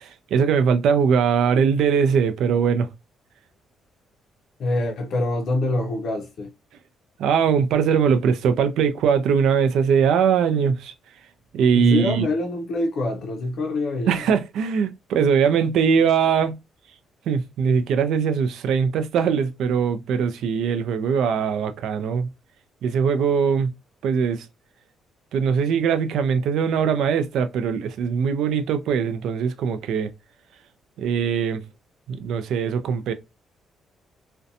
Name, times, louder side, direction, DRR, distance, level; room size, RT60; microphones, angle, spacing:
voice 1, 0.0-2.9 7.2-10.9 11.5-12.3 14.1-16.6 17.3-22.3 22.8-23.7 24.0-24.4 25.3-30.1 31.0-31.6 32.1-33.1, right 6 dB, 80° right, 0.4 m, -21 dB
voice 2, 4.6-6.5 11.7-14.2, left 2 dB, 60° left, 0.5 m, -25 dB
2.5 x 2.1 x 2.6 m
cardioid pair, 120°, 0 cm